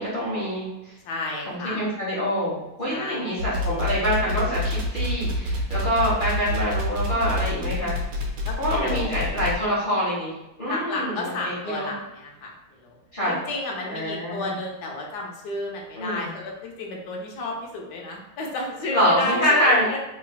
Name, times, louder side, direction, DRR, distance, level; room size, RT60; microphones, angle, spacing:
voice 1, 0.0-0.9 1.5-8.0 8.6-10.3 10.6-11.9 13.1-13.4 13.8-14.5 16.0-16.3 18.9-19.9, equal, 30° left, -9 dB, 1.1 m, -25 dB
voice 2, 1.0-1.9 2.9-3.3 8.4-9.4 10.7-12.5 12.8-13.0 13.3-20.0, left 2 dB, 70° left, -1 dB, 1.2 m, -32 dB
sound 1, 3.4-9.6, left 1 dB, 80° right, 1.4 m, -27 dB
3.1 x 3.1 x 2.3 m, 0.93 s
omnidirectional pair, 2.0 m